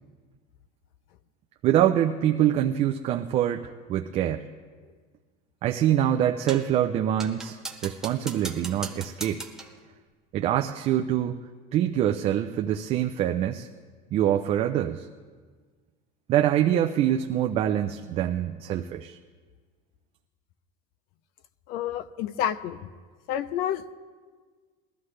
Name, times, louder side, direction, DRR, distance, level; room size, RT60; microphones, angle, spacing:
voice 1, 1.6-4.5 5.6-9.4 10.3-11.4 11.7-13.7 14.1-15.1 16.3-19.2, right 11 dB, 35° right, 5 dB, 0.4 m, -25 dB
sound 1, 6.5-6.8 7.2-9.8, right 2 dB, 5° right, 0.7 m, -39 dB
voice 2, 21.7-22.9 23.3-24.0, left 10 dB, 50° left, 15 dB, 0.6 m, -29 dB
21.0 x 13.0 x 3.2 m, 1.5 s
cardioid pair, 160°, 19 cm